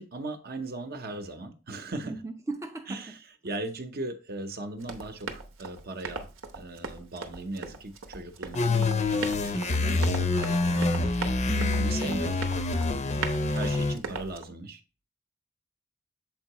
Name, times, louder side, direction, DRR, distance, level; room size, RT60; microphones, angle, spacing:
voice 1, 0.0-2.2 2.9-6.2 6.5-8.8 9.1-11.1 11.8-12.4 13.1-14.8, right 2 dB, 50° right, 0.8 m, -38 dB
voice 2, 2.0-3.0 8.7-9.2 11.5-11.9, right 2 dB, 15° right, 0.4 m, -37 dB
Run, 4.8-14.4, right 4 dB, 75° right, 0.9 m, -39 dB
sound 1, 8.5-13.9, left 3 dB, 35° left, 0.6 m, -26 dB
7.3 x 4.6 x 2.9 m
head